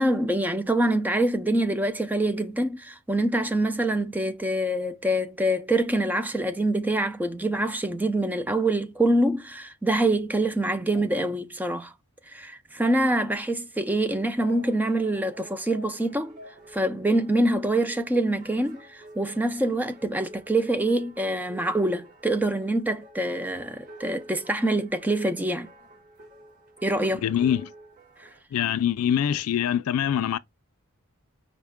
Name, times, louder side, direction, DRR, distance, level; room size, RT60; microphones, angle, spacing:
voice 1, 0.0-11.9 12.3-16.3 16.7-25.7 26.8-27.2 28.2-28.3, right 1 dB, 10° right, 0.3 m, -25 dB
sound 1, 14.3-28.4, right 1 dB, 35° right, 1.5 m, -48 dB
voice 2, 27.2-27.7 28.5-30.4, left 9 dB, 80° left, 0.3 m, -24 dB
5.1 x 2.1 x 3.5 m
head